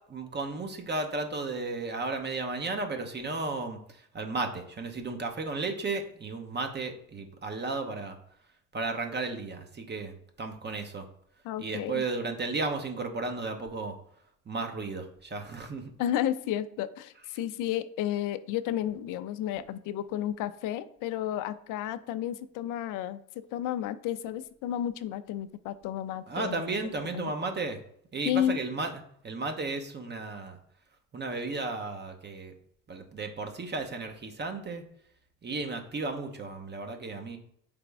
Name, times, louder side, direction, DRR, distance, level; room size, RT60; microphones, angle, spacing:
voice 1, 0.1-8.2 8.7-11.1 11.6-13.9 14.5-15.9 26.3-27.8 28.1-30.6 31.1-32.6 32.9-34.8 35.4-37.4, right 3 dB, 25° right, 5 dB, 0.8 m, -34 dB
voice 2, 11.4-12.0 16.0-26.6 27.1-27.3 28.2-28.6, left 11 dB, 55° left, 13 dB, 0.5 m, -32 dB
3.8 x 3.4 x 3.4 m, 0.70 s
hypercardioid pair, 60°, 38 cm